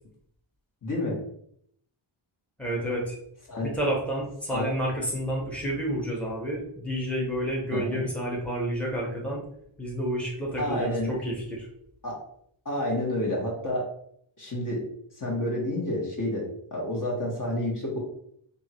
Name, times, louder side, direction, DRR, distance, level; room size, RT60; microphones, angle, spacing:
voice 1, 0.8-1.2 3.5-3.7 4.5-4.7 7.7-8.0 10.6-11.1 12.0-12.2 12.6-13.9 14.4-14.8 15.2-18.0, left 1 dB, 40° left, -2 dB, 1.4 m, -29 dB
voice 2, 2.6-3.2 3.6-9.4 9.8-11.7, equal, ahead, -3 dB, 1.1 m, -30 dB
3.6 x 2.7 x 4.4 m, 0.69 s
wide cardioid pair, 135°, 50 cm